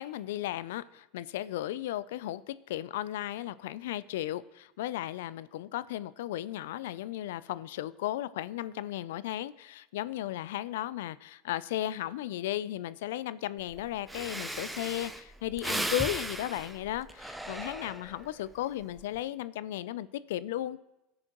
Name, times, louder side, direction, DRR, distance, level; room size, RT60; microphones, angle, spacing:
voice 1, 0.0-20.8, left 13 dB, 90° left, 17 dB, 0.3 m, -35 dB
Breathing, 13.7-13.8 14.1-18.3 18.8-19.2, right 1 dB, 5° right, 0.5 m, -37 dB
18.0 x 6.3 x 2.9 m, 0.93 s
supercardioid pair, 125°, 0 cm